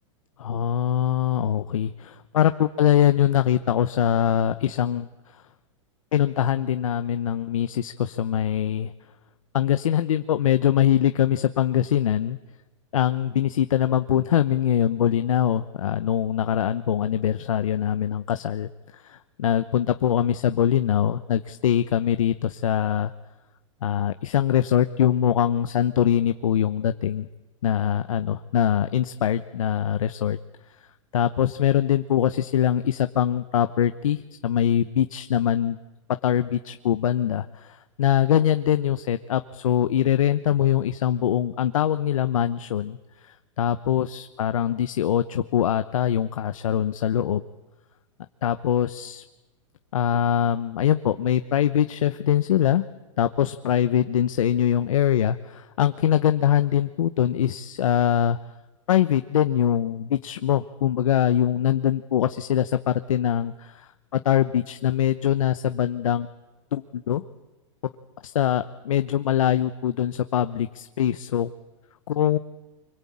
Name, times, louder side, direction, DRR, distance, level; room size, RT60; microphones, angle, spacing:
voice 1, 0.4-5.1 6.1-8.9 9.5-12.4 12.9-23.1 23.8-27.3 27.6-30.4 31.1-35.8 36.2-43.0 43.2-47.4 48.4-49.2 49.9-52.9 53.2-58.4 58.9-66.3 66.7-67.2 68.2-71.5 72.1-72.4, left 10 dB, 85° left, 10 dB, 0.9 m, -23 dB
25.0 x 22.0 x 8.7 m, 1.1 s
hypercardioid pair, 135°, 17 cm